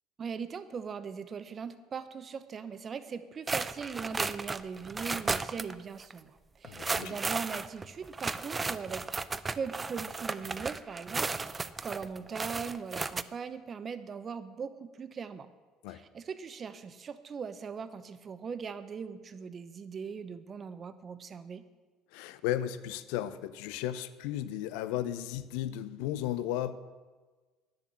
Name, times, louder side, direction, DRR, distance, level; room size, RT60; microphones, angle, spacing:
voice 1, 0.2-9.0 9.6-15.5 15.9-21.6, right 6 dB, 40° right, 12 dB, 0.8 m, -40 dB
sound 1, 3.5-5.7 6.0-6.1 6.6-13.2, right 4 dB, 25° right, 0.5 m, -34 dB
voice 2, 6.6-7.2 15.8-16.0 22.1-26.8, left 12 dB, 75° left, 13 dB, 0.6 m, -35 dB
10.5 x 7.0 x 7.7 m, 1.3 s
hypercardioid pair, 75°, 0 cm